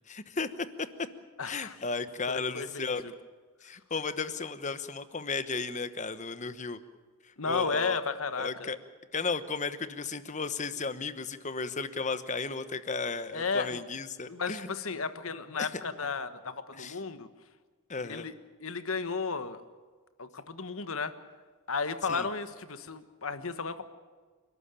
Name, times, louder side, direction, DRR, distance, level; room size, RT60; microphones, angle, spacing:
voice 1, 0.1-0.5 1.4-3.0 3.6-6.8 7.4-8.0 8.4-8.8 9.1-14.7 15.6-15.8 16.8-17.0 17.9-18.3 22.1-22.3, left 4 dB, 35° left, 12 dB, 1.0 m, -34 dB
voice 2, 1.4-1.8 2.3-3.1 7.4-8.7 13.3-13.8 14.3-17.3 18.1-18.3 18.6-19.6 20.2-21.1 21.7-23.8, left 4 dB, 70° left, 11 dB, 1.3 m, -34 dB
29.5 x 12.5 x 9.0 m, 1.5 s
head